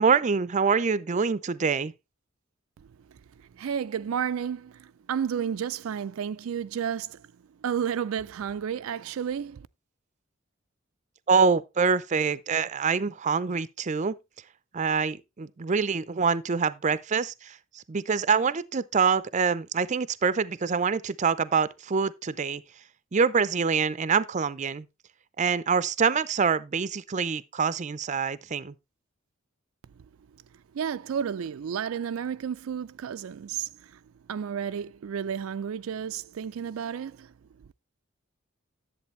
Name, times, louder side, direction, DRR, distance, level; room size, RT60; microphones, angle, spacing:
voice 1, 0.0-1.9 11.3-14.2 14.7-22.6 23.1-24.9 25.4-28.7, right 5 dB, 35° right, 0.5 m, -25 dB
voice 2, 3.5-7.2 7.6-9.7 30.7-33.9 34.3-37.3, right 8 dB, 90° right, 0.4 m, -31 dB
10.5 x 7.7 x 3.1 m
head